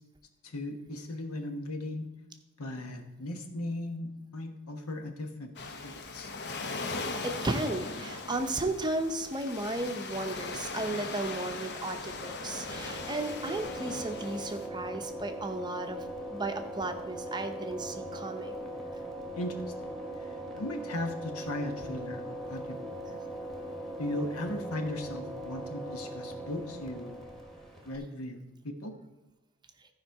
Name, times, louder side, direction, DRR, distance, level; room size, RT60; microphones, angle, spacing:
voice 1, 0.4-2.1 2.6-5.5 5.8-6.3 19.3-19.9 20.2-22.8 23.1-23.2 24.0-27.2 27.8-28.4 28.6-29.0, left 1 dB, 70° left, 4 dB, 1.2 m, -37 dB
Waves surf, 5.6-14.7, left 3 dB, 50° left, 0.9 m, -39 dB
voice 2, 7.2-16.0 16.3-18.6, right 2 dB, 20° right, 5 dB, 0.7 m, -34 dB
sound 1, 12.0-28.0, right 1 dB, ahead, 1.2 m, -40 dB
14.5 x 5.0 x 4.6 m, 0.99 s
head